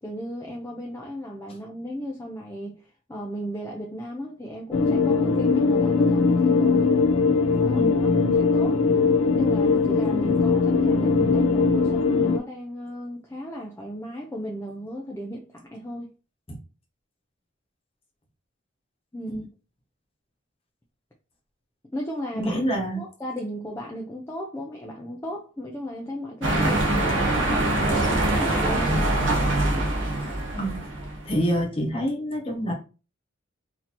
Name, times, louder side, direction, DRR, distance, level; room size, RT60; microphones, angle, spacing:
voice 1, 0.0-6.9 7.6-8.8 9.4-16.1 19.1-19.5 21.9-22.7 23.0-29.4, equal, 15° left, 0.4 m, -35 dB
sound 1, 4.7-12.4, left 4 dB, 80° left, 0.4 m, -20 dB
voice 2, 22.3-23.0 30.6-30.8 31.2-32.7, equal, 30° left, 1.0 m, -27 dB
sound 2, 26.4-31.4, right 1 dB, 60° right, 0.8 m, -23 dB
4.2 x 2.7 x 2.9 m
head